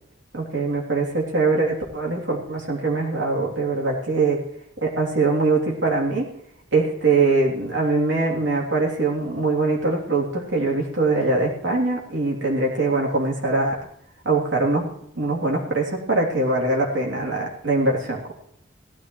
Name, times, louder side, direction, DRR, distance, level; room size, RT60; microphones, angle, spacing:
voice 1, 0.3-4.4 4.8-6.3 6.7-13.8 14.2-18.3, right 3 dB, 80° right, -2 dB, 3.2 m, -22 dB
17.5 x 13.0 x 3.2 m, 0.69 s
head